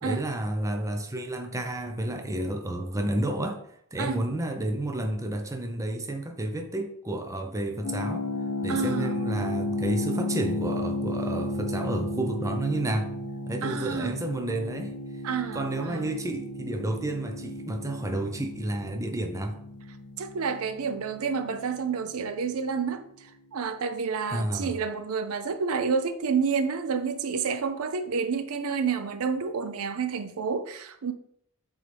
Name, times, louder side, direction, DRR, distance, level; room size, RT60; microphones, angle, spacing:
voice 1, 0.0-3.6 3.9-8.3 8.6-13.1 13.5-14.9 15.5-19.6 24.3-24.7, right 1 dB, 15° right, 0.6 m, -31 dB
sound 1, 7.8-22.6, left 2 dB, 90° left, 0.6 m, -34 dB
voice 2, 8.7-9.1 13.6-14.1 15.2-16.1 20.2-23.1 23.5-31.1, right 5 dB, 70° right, 0.5 m, -29 dB
7.2 x 3.9 x 3.4 m
head